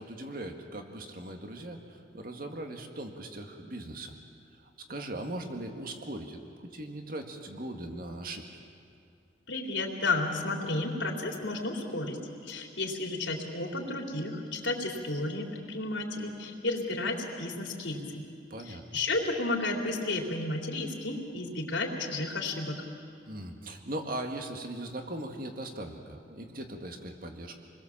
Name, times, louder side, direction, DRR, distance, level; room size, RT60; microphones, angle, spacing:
voice 1, 0.0-4.1 4.9-8.5 18.5-18.8 23.2-27.6, right 1 dB, 50° right, 4 dB, 1.9 m, -39 dB
voice 2, 9.5-18.2 18.6-22.8, left 2 dB, 80° left, 0 dB, 3.5 m, -32 dB
28.0 x 21.0 x 7.4 m, 2.3 s
head